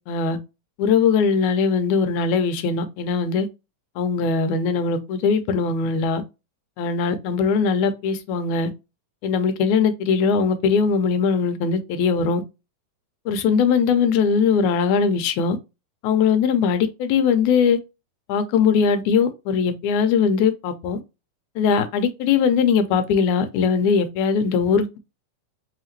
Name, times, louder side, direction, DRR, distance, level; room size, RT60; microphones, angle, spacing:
voice 1, 0.1-0.4 0.8-3.5 4.0-6.2 6.8-8.7 9.2-12.4 13.3-15.6 16.0-17.8 18.3-21.0 21.6-25.0, left 6 dB, 85° left, 2.0 m, -20 dB
5.6 x 2.8 x 2.9 m
omnidirectional pair, 3.4 m